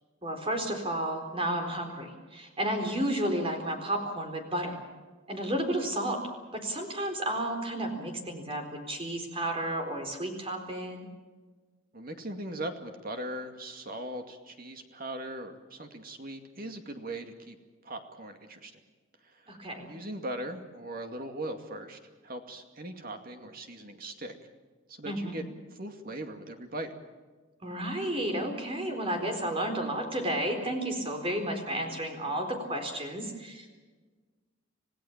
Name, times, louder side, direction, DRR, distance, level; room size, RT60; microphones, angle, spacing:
voice 1, 0.2-4.8 5.3-6.2 6.5-11.1 19.5-19.9 25.0-25.4 27.6-33.7, right 1 dB, 30° right, 4 dB, 4.1 m, -32 dB
voice 2, 11.9-17.6 17.8-18.8 19.4-19.5 19.9-22.0 22.2-24.3 24.9-25.4 25.7-26.9, right 1 dB, 45° right, 5 dB, 2.4 m, -39 dB
27.5 x 17.0 x 7.4 m, 1.4 s
head